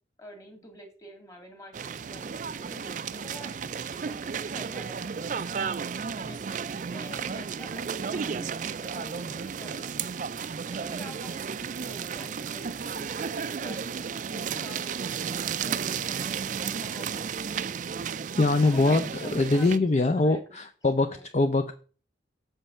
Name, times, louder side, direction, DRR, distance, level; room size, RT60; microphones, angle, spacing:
voice 1, 0.2-5.5 6.2-6.4 6.9-10.0 10.6-13.8 14.2-17.5 18.6-20.7 21.0-21.3, equal, 20° left, 4 dB, 1.8 m, -47 dB
sound 1, 1.7-19.8, right 6 dB, 45° right, 0.3 m, -33 dB
voice 2, 18.4-21.7, left 2 dB, 35° left, 6 dB, 0.5 m, -23 dB
7.3 x 5.5 x 5.5 m, 0.39 s
head